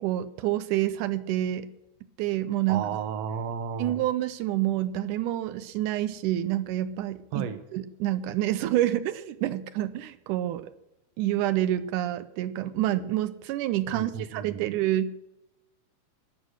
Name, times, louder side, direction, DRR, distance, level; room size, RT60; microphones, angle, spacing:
voice 1, 0.0-1.7 2.2-2.9 3.8-10.7 11.2-15.1, right 13 dB, 85° right, 13 dB, 2.2 m, -28 dB
voice 2, 2.7-4.0 7.3-7.6 13.9-14.7, right 7 dB, 65° right, 9 dB, 2.1 m, -33 dB
20.5 x 8.2 x 6.3 m, 0.92 s
omnidirectional pair, 3.5 m